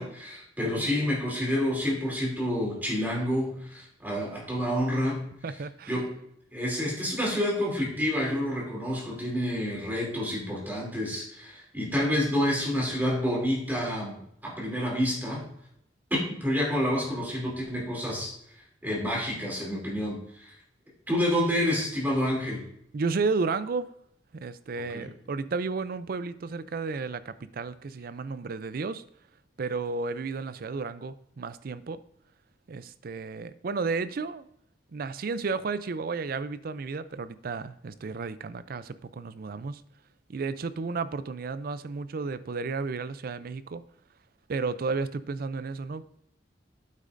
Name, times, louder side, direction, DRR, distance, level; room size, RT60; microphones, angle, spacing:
voice 1, 0.0-5.3 5.9-6.1 6.5-14.2 14.4-15.5 16.1-18.3 18.8-20.5 21.1-22.6 24.9-25.1, equal, 10° right, -4 dB, 2.8 m, -28 dB
voice 2, 5.4-6.0 22.9-23.9 24.3-29.0 29.6-32.0 32.7-34.5 34.9-39.8 40.3-43.8 44.5-46.1, right 4 dB, 55° right, 14 dB, 0.4 m, -32 dB
8.3 x 8.3 x 2.6 m, 0.73 s
head